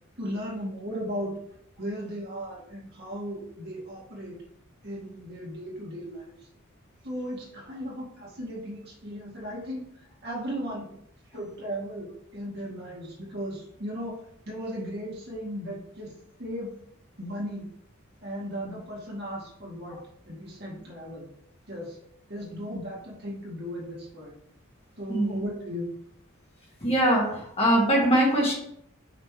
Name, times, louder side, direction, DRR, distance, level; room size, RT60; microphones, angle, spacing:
voice 1, 0.2-1.3 1.8-4.4 4.8-6.3 7.0-10.9 11.3-14.2 14.5-16.1 16.4-16.7 17.2-17.7 18.2-20.0 20.3-21.3 21.7-22.0 22.3-24.4 25.0-25.9, equal, 50° right, -4 dB, 2.2 m, -36 dB
voice 2, 26.8-28.6, right 1 dB, 30° left, -3 dB, 1.6 m, -22 dB
5.9 x 3.3 x 4.8 m, 0.71 s
head